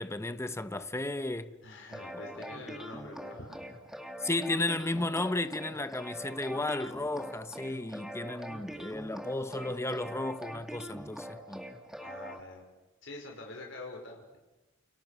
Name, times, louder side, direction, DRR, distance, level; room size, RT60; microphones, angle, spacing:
voice 1, 0.0-1.6 4.2-11.7, left 2 dB, 15° left, 1.0 m, -34 dB
voice 2, 1.6-4.0 12.0-12.7 13.0-14.4, left 2 dB, 65° left, 5.5 m, -46 dB
sound 1, 1.9-12.4, equal, ahead, 2.0 m, -44 dB
29.5 x 29.5 x 6.7 m
head